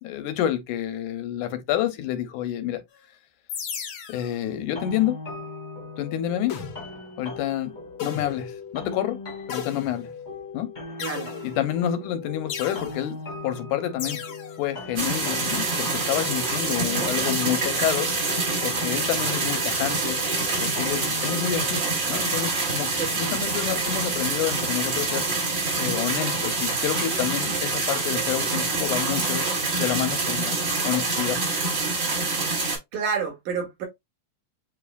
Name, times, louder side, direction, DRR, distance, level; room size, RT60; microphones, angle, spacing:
voice 1, 0.0-2.8 4.1-5.2 6.0-6.6 7.2-7.7 8.0-9.2 9.5-10.1 10.5-10.7 11.4-14.2 14.6-18.1 18.6-25.3 25.8-29.5 29.7-30.6 30.8-31.4, left 11 dB, 85° left, 2.3 m, -28 dB
sound 1, 3.5-4.3 6.5-7.0 8.0-8.5 9.5-10.2 11.0-11.8 12.5-13.0 14.0-14.6, left 7 dB, 70° left, 1.2 m, -35 dB
sound 2, 4.7-21.7, left 3 dB, 25° left, 1.0 m, -38 dB
sound 3, 15.0-32.8, right 3 dB, 40° right, 2.4 m, -26 dB
voice 2, 32.9-33.9, right 6 dB, 80° right, 3.5 m, -28 dB
7.9 x 2.8 x 2.2 m
omnidirectional pair, 3.4 m